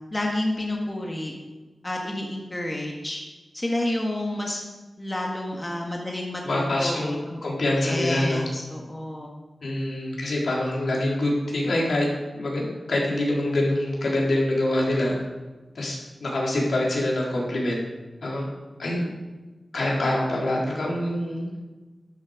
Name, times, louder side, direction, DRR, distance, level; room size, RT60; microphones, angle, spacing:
voice 1, 0.1-1.3 1.8-3.2 3.5-4.6 5.0-7.4 7.8-9.3, left 1 dB, 20° left, -1 dB, 1.8 m, -30 dB
voice 2, 6.4-8.5 9.6-12.1 12.3-15.2 15.7-17.8 18.2-18.5 18.8-19.1 19.7-21.5, left 1 dB, 70° left, -3 dB, 3.9 m, -25 dB
13.0 x 11.0 x 5.0 m, 1.2 s
wide cardioid pair, 115°, 0 cm